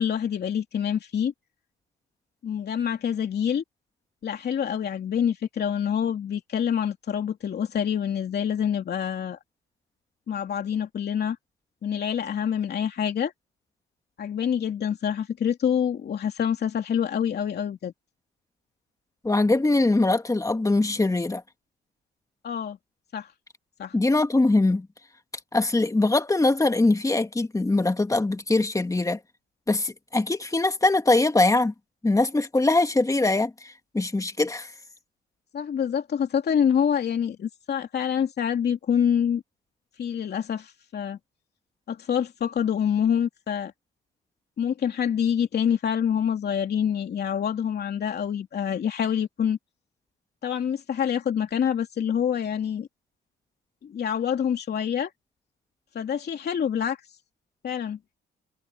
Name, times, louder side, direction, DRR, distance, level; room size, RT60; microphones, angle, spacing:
voice 1, 0.0-1.3 2.4-3.6 4.2-9.4 10.3-11.4 11.8-13.3 14.2-17.9 22.4-22.8 23.1-23.3 23.8-23.9 35.5-39.4 40.0-41.2 41.9-43.7 44.6-49.6 50.4-52.9 53.8-55.1 55.9-57.0 57.6-58.0, left 8 dB, 55° left, 2.9 m, -26 dB
voice 2, 19.2-21.4 23.9-24.9 25.5-29.2 29.7-31.7 32.0-34.7, left 2 dB, 15° left, 2.1 m, -22 dB
cardioid pair, 90°, 20 cm